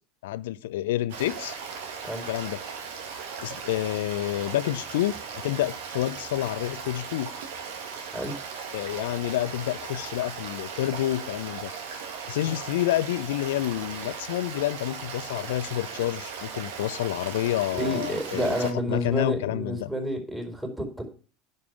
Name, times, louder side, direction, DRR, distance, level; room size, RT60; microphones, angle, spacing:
voice 1, 0.2-1.6 2.3-2.6 3.4-7.3 8.7-11.7 12.3-19.9, left 14 dB, 70° left, 17 dB, 0.6 m, -29 dB
Stream, 1.1-18.7, right 6 dB, 70° right, 1.9 m, -38 dB
voice 2, 17.7-21.0, equal, 10° right, 2 dB, 4.8 m, -30 dB
11.0 x 5.4 x 8.3 m, 0.39 s
hypercardioid pair, 75°, 0 cm